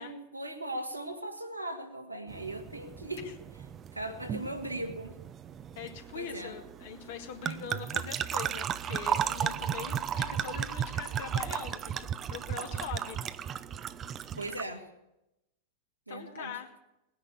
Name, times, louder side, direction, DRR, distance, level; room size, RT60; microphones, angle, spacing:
voice 1, 0.0-3.3 3.9-5.1 6.1-6.5 14.4-14.9 16.1-16.5, right 1 dB, 85° right, 3 dB, 1.9 m, -38 dB
sound 1, 2.3-14.6, right 9 dB, 25° right, 0.6 m, -35 dB
voice 2, 5.8-13.2 13.5-13.6 16.1-16.7, left 8 dB, 55° left, 4 dB, 2.1 m, -42 dB
19.5 x 10.5 x 7.1 m, 0.90 s
figure-of-eight pair, 90°, 0 cm